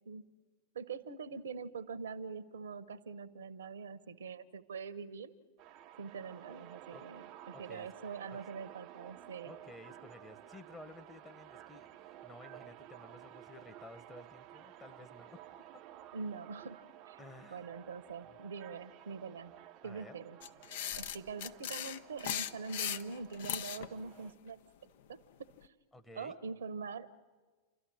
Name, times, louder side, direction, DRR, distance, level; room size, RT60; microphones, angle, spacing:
voice 1, 0.7-5.3 6.0-9.5 16.1-17.2 17.5-19.5 19.8-20.4 21.0-24.6 25.1-25.2 25.6-25.7 26.1-27.2, right 5 dB, 65° right, 15 dB, 1.0 m, -44 dB
sound 1, 5.6-24.3, right 12 dB, 40° right, 0.7 m, -54 dB
voice 2, 7.5-7.9 8.3-8.4 9.4-15.4 17.2-17.7 18.3-18.4 19.8-20.2 25.9-26.4, left 2 dB, 15° left, 7 dB, 1.4 m, -54 dB
sound 2, 20.4-23.9, left 10 dB, 55° left, 0.9 m, -38 dB
29.0 x 13.0 x 9.9 m, 1.4 s
figure-of-eight pair, 90°, 0 cm